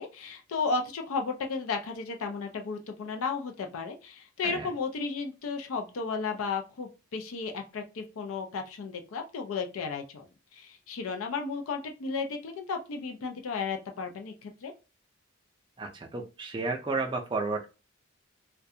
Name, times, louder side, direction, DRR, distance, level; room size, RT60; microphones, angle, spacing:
voice 1, 0.0-10.3 10.5-14.7, left 4 dB, 80° left, 4 dB, 0.4 m, -34 dB
voice 2, 15.8-17.7, right 3 dB, 20° right, 2 dB, 0.3 m, -32 dB
2.3 x 2.2 x 2.7 m, 0.30 s
head